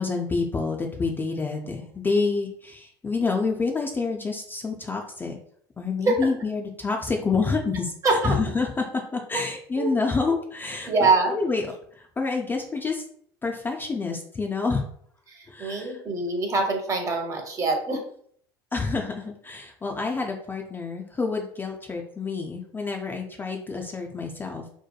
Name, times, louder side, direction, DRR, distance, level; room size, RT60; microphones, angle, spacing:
voice 1, 0.0-5.4 5.8-7.9 8.2-11.7 11.9-13.0 13.4-14.8 15.5-16.0 18.7-24.7, left 4 dB, 20° left, 1 dB, 0.3 m, -28 dB
voice 2, 8.0-8.4 9.8-9.9 10.8-11.4 15.3-18.0, right 3 dB, 30° right, 2 dB, 0.7 m, -24 dB
2.8 x 2.1 x 2.3 m, 0.62 s
hypercardioid pair, 80°, 11 cm